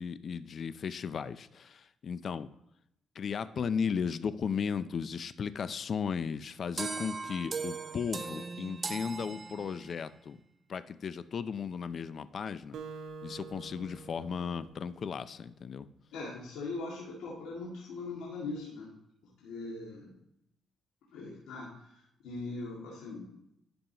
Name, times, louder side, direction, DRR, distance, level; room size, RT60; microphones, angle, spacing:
voice 1, 0.0-2.5 3.2-10.4 10.7-12.8 13.2-15.9, left 6 dB, 50° left, 14 dB, 0.5 m, -35 dB
sound 1, 6.8-10.1, right 4 dB, 30° right, 0.5 m, -38 dB
Acoustic guitar, 12.7-15.5, right 4 dB, 70° right, 0.9 m, -47 dB
voice 2, 16.1-18.9 19.4-20.1 21.1-23.3, left 3 dB, 90° left, -6 dB, 2.2 m, -41 dB
12.0 x 5.3 x 2.9 m, 0.79 s
cardioid pair, 90°, 0 cm